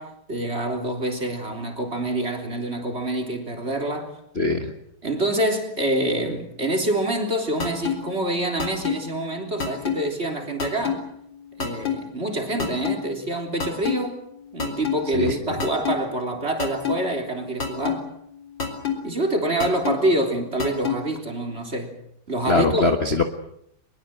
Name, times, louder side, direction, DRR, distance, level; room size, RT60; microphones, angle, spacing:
voice 1, 0.0-4.1 5.0-11.0 11.6-14.2 14.5-18.1 19.0-21.9 22.3-22.9, right 1 dB, 30° right, 3.8 m, -26 dB
voice 2, 4.3-4.7 15.1-15.4 22.5-23.2, left 3 dB, 30° left, 1.5 m, -21 dB
sound 1, 7.6-7.9 8.6-9.0 9.6-9.9 10.6-11.0 11.6-12.0 12.6-13.0 13.6-13.9 14.6-15.0 15.6-15.9 16.6-17.0 17.6-18.0 18.6-19.0 19.6-19.9 20.6-21.0, left 7 dB, 55° left, 4.4 m, -24 dB
22.5 x 22.0 x 7.8 m
omnidirectional pair, 2.4 m